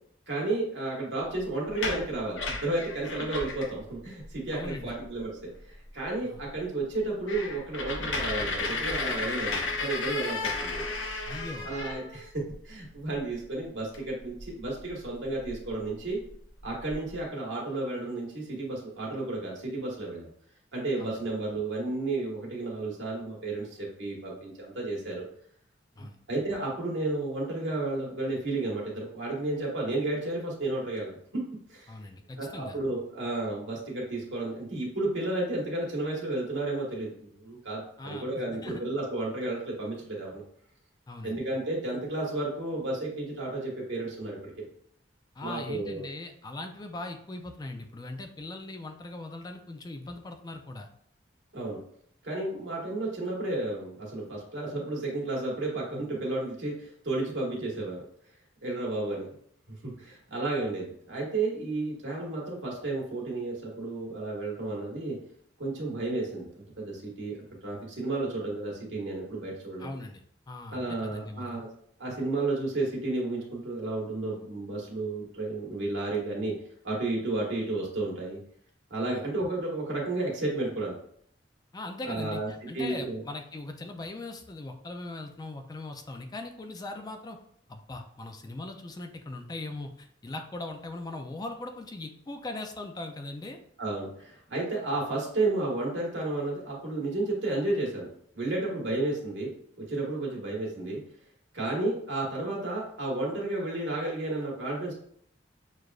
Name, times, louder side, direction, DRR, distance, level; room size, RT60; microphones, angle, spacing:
voice 1, 0.3-5.4 5.6-10.8 11.6-12.3 12.6-16.2 16.6-20.3 20.7-25.3 26.0-31.4 31.7-31.9 32.4-40.4 41.2-44.7 45.4-46.0 51.5-51.8 52.2-58.0 58.6-59.3 59.7-65.2 65.6-69.9 70.7-71.7 72.0-76.5 76.8-78.4 78.9-81.0 82.0-83.2 93.8-98.1 98.3-99.5 99.9-101.0 101.5-104.9, right 2 dB, 70° right, -3 dB, 1.4 m, -32 dB
sound 1, 1.6-3.8 4.2-4.3 4.6-5.0 5.5-5.6 6.0-6.1 6.4-6.5 6.9-12.5 13.9-14.1 14.4-15.7 16.3-16.4 16.6-17.2, left 3 dB, 90° left, 0.7 m, -33 dB
voice 2, 4.5-5.0 6.2-6.4 11.3-11.7 21.0-21.2 26.0-26.2 31.9-32.8 38.0-38.2 38.6-38.8 41.1-41.4 45.3-50.9 69.8-71.6 79.1-79.3 81.7-87.4 87.7-93.6, left 2 dB, 20° left, 4 dB, 0.3 m, -40 dB
6.4 x 2.4 x 2.4 m, 0.66 s
head